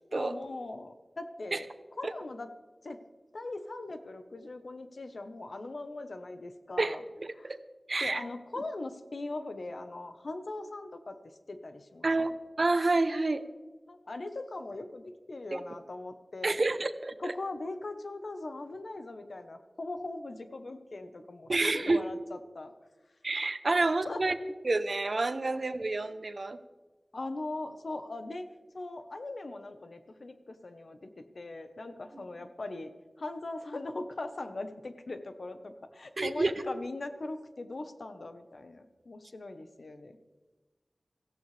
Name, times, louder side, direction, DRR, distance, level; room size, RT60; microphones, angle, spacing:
voice 1, 0.1-1.7 2.0-2.5 2.8-3.0 3.3-7.0 7.3-7.5 8.0-11.2 11.5-12.4 13.9-16.6 17.2-22.7 24.0-24.4 25.5-25.6 27.1-28.5 28.7-31.1 31.3-32.9 33.2-40.2, left 2 dB, 75° left, 8 dB, 1.0 m, -40 dB
voice 2, 6.8-7.6 7.9-8.2 12.0-13.4 15.5-15.6 16.4-17.3 21.5-22.0 23.2-24.4 24.6-26.6 32.1-32.3 36.2-36.6, right 2 dB, 65° right, 11 dB, 0.7 m, -29 dB
17.0 x 15.0 x 3.3 m, 1.2 s
wide cardioid pair, 45°, 0 cm